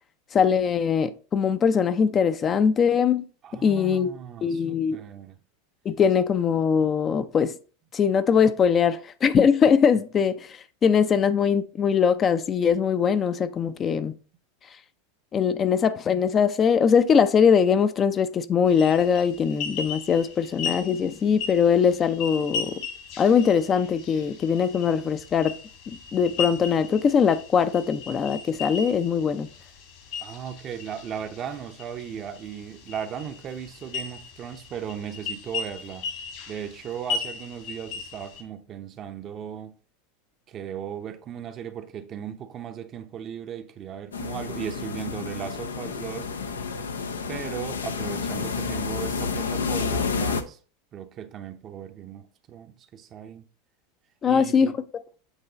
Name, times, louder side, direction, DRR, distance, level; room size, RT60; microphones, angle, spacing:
voice 1, 0.3-3.2 3.6-4.1 4.4-5.0 5.8-7.6 7.9-14.2 15.3-22.8 23.2-25.6 25.9-29.5 54.2-54.7, left 7 dB, 30° left, 0.5 m, -21 dB
voice 2, 3.4-5.4 30.2-36.1 36.5-39.8 40.5-46.3 47.3-50.6 50.9-53.5 54.2-54.7, right 8 dB, 40° right, 0.7 m, -37 dB
sound 1, 18.7-38.4, left 5 dB, 60° left, 1.6 m, -37 dB
sound 2, 44.1-50.4, left 5 dB, 85° left, 0.6 m, -30 dB
8.1 x 3.1 x 3.9 m
hypercardioid pair, 90°, 0 cm